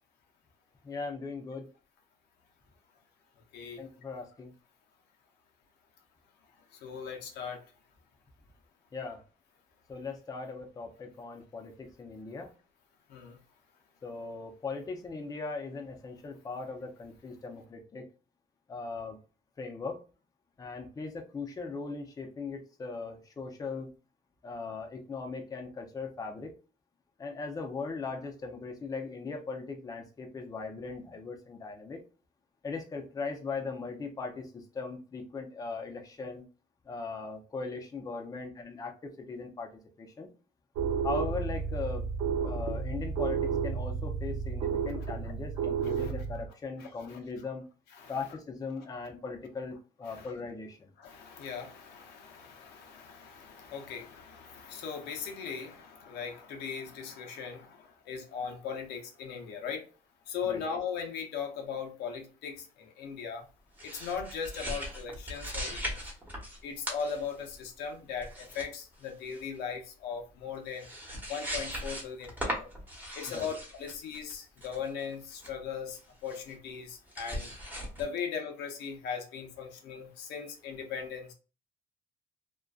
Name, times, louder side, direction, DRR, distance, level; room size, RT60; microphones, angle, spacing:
voice 1, 0.8-1.6 3.8-4.5 8.9-9.2 9.9-12.5 14.0-18.1 18.7-19.2 19.6-20.0 20.6-23.9 24.4-26.5 27.2-32.0 32.6-36.4 36.9-39.7 40.0-40.3 41.0-42.0 42.4-47.7 48.1-50.9 60.4-60.6 73.3-73.5, left 4 dB, 20° left, 0.5 m, -39 dB
voice 2, 3.5-3.8 6.7-7.6 13.1-13.4 44.8-45.1 45.8-46.1 46.8-47.2 47.9-48.2 50.1-50.3 51.0-59.8 60.3-63.5 63.8-66.0 66.6-70.9 71.3-72.7 73.1-77.5 78.0-81.3, left 6 dB, 80° left, 0.7 m, -39 dB
sound 1, 40.8-46.5, right 6 dB, 85° right, 0.5 m, -32 dB
sound 2, 63.8-66.6 66.9-67.6 68.2-68.7 68.9-69.5 70.5-70.6 70.8-75.5 76.3-76.5 77.1-78.0, equal, 10° right, 1.0 m, -39 dB
2.5 x 2.2 x 2.3 m
cardioid pair, 110°, 17 cm